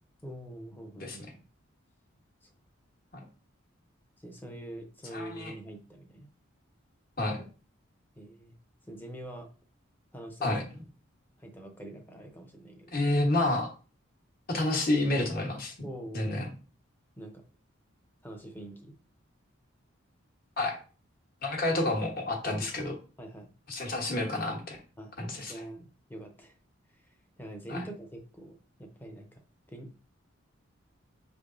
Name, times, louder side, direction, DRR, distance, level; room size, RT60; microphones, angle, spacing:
voice 1, 0.2-1.4 2.4-2.5 4.2-6.3 8.2-8.5 8.9-9.5 10.1-10.6 11.4-12.9 15.8-16.4 17.2-17.4 18.2-18.9 22.6-22.7 23.2-23.5 25.0-25.1 25.5-26.6 26.9-27.0 27.4-29.4 29.7-29.9, right 1 dB, 10° left, 3 dB, 0.6 m, -44 dB
voice 2, 5.1-5.5 7.2-7.4 10.4-10.6 12.9-13.7 14.5-15.9 16.1-16.5 20.6-20.8 21.4-23.0 23.7-24.8 25.2-25.5 27.7-27.8, left 2 dB, 45° left, 1 dB, 1.1 m, -29 dB
5.5 x 3.3 x 2.5 m, 0.36 s
head